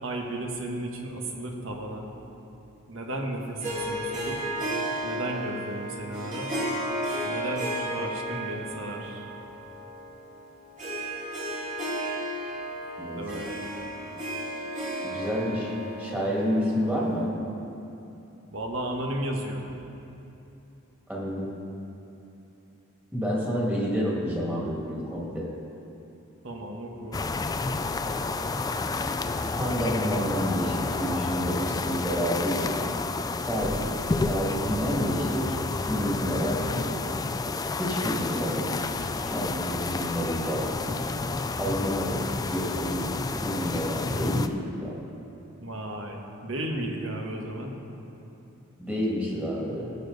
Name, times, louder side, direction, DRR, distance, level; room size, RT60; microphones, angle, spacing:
voice 1, 0.0-2.5 2.9-4.5 5.0-6.6 7.2-9.3 13.2-13.6 18.5-19.7 26.4-27.2 45.6-47.8, right 1 dB, 70° right, 1 dB, 1.4 m, -34 dB
Harp, 3.6-17.2, right 1 dB, 40° right, 2.4 m, -33 dB
voice 2, 15.0-15.7 16.0-17.3 21.1-21.5 23.1-25.5 29.6-32.7 33.4-33.8 34.1-35.6 35.9-37.0 37.8-38.8 39.2-41.0 41.6-43.1 43.4-45.0 48.8-50.0, equal, 10° right, -5 dB, 2.1 m, -29 dB
sound 1, 27.1-44.5, left 3 dB, 20° left, 0.3 m, -30 dB
16.5 x 6.9 x 4.0 m, 2.9 s
head